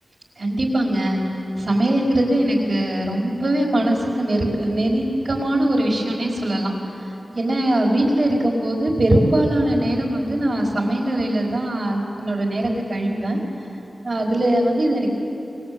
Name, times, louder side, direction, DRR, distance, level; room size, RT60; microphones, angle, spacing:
voice 1, 0.4-1.2 1.6-7.1 7.3-13.4 14.0-15.1, right 1 dB, 50° right, -1 dB, 4.9 m, -21 dB
26.5 x 21.0 x 8.8 m, 2.9 s
wide cardioid pair, 110°, 0 cm